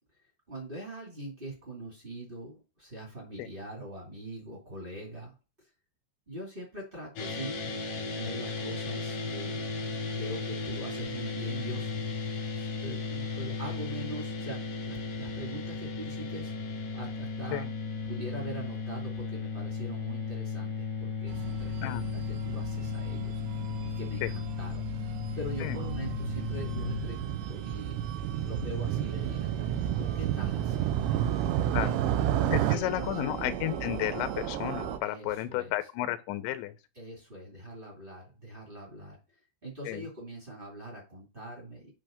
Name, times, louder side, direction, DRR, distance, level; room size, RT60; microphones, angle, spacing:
voice 1, 0.5-5.3 6.3-7.6 7.9-9.6 10.1-11.9 12.5-16.5 16.9-17.7 18.0-23.4 23.9-25.1 25.3-28.0 28.4-31.3 31.5-32.0 32.5-32.6 33.0-33.1 35.0-35.7 36.9-39.2 39.6-41.9, right 1 dB, 25° right, 1.2 m, -42 dB
sound 1, 7.2-27.1, left 4 dB, 60° left, 2.0 m, -35 dB
sound 2, 21.3-35.0, right 8 dB, 75° right, 2.9 m, -40 dB
Motorcycle, 25.2-32.8, right 11 dB, 90° right, 2.6 m, -30 dB
voice 2, 32.5-36.7 39.9-40.1, left 14 dB, 80° left, 2.9 m, -32 dB
9.1 x 3.3 x 5.1 m
omnidirectional pair, 5.7 m